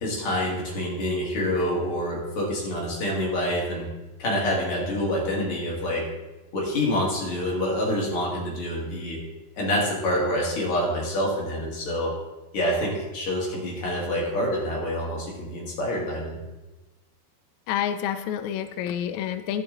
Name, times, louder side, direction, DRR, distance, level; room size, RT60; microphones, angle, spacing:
voice 1, 0.0-3.9 4.2-6.1 6.5-9.2 9.6-12.1 12.5-16.4, left 1 dB, 45° left, -3 dB, 2.6 m, -27 dB
voice 2, 17.7-19.6, left 9 dB, 80° left, 8 dB, 1.7 m, -28 dB
11.0 x 8.9 x 3.9 m, 1.1 s
omnidirectional pair, 4.1 m